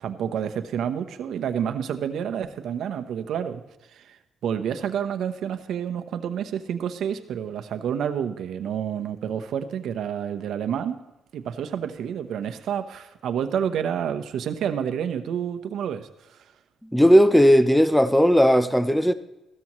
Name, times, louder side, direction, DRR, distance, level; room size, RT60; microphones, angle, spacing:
voice 1, 0.0-3.6 3.9-11.0 11.3-16.4, right 8 dB, 70° right, 0.9 m, -29 dB
voice 2, 16.9-19.1, equal, ahead, 0.7 m, -16 dB
15.5 x 13.5 x 3.1 m
cardioid pair, 90°, 0 cm